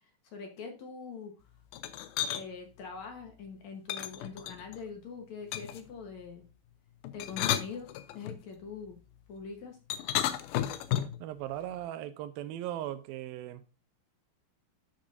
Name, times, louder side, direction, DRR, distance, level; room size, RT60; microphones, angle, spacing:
voice 1, 0.3-1.3 2.2-6.5 7.1-7.9 8.1-9.0 9.3-9.8, left 5 dB, 60° left, 2.2 m, -43 dB
sound 1, 1.7-2.4 3.9-4.8 5.5-5.9 7.0-8.4 9.9-11.2, left 12 dB, 85° left, 2.6 m, -33 dB
voice 2, 11.2-13.6, right 12 dB, 85° right, 2.6 m, -38 dB
11.5 x 6.1 x 2.6 m
omnidirectional pair, 4.2 m